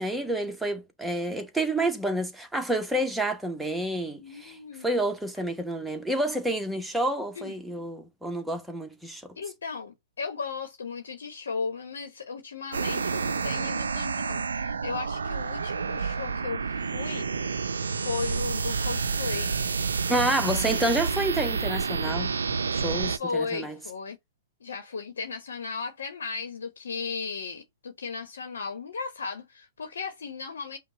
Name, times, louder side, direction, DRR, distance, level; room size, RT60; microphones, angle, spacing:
voice 1, 0.0-9.3 20.1-22.3 22.7-23.8, right 1 dB, 5° right, 1.1 m, -29 dB
voice 2, 4.2-4.9 7.4-7.5 9.4-17.3 17.9-19.6 23.0-24.2 24.6-30.8, left 5 dB, 70° left, 1.1 m, -36 dB
sound 1, 12.7-23.2, right 5 dB, 80° right, 0.5 m, -29 dB
5.4 x 2.3 x 3.1 m
hypercardioid pair, 115°, 0 cm